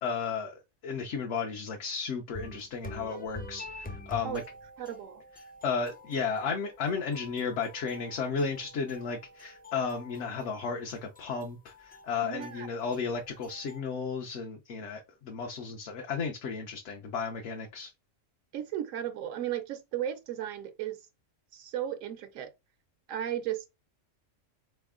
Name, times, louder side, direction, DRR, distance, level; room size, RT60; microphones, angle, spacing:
voice 1, 0.0-4.4 5.6-17.9, left 5 dB, 70° left, 1.0 m, -34 dB
sound 1, 2.3-13.8, left 2 dB, 15° left, 0.3 m, -47 dB
voice 2, 4.8-5.2 12.2-12.7 18.5-21.0 21.5-22.5 23.1-23.7, right 11 dB, 85° right, 1.0 m, -35 dB
4.2 x 3.2 x 3.6 m
omnidirectional pair, 1.3 m